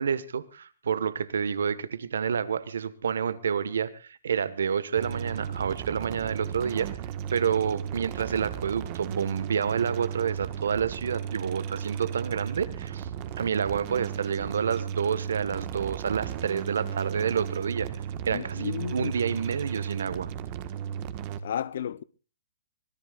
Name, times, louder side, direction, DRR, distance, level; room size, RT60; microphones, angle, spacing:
voice 1, 0.0-6.9 7.3-13.1 13.4-17.9 18.2-20.3, right 7 dB, 80° right, 1.5 m, -29 dB
sound 1, 5.0-21.4, right 8 dB, 30° right, 1.5 m, -35 dB
voice 2, 18.3-19.1 21.4-22.0, left 9 dB, 55° left, 0.8 m, -33 dB
25.0 x 18.0 x 2.5 m
hypercardioid pair, 165°, 0 cm